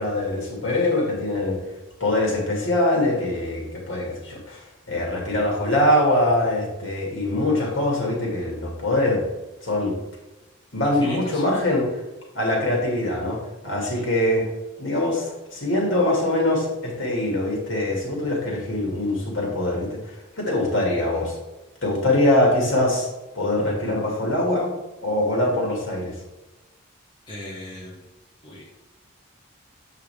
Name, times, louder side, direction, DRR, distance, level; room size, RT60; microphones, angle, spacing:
voice 1, 0.0-1.6 2.0-9.2 9.6-9.9 10.7-11.9 12.3-14.5 14.8-21.4 21.8-23.1 23.3-24.7 25.0-26.2, left 1 dB, 70° left, -2 dB, 2.5 m, -23 dB
voice 2, 10.8-11.4 13.9-14.1 25.7-25.8 27.3-28.1 28.4-28.7, left 1 dB, 25° left, -5 dB, 1.5 m, -39 dB
7.3 x 5.6 x 3.6 m, 1.0 s
head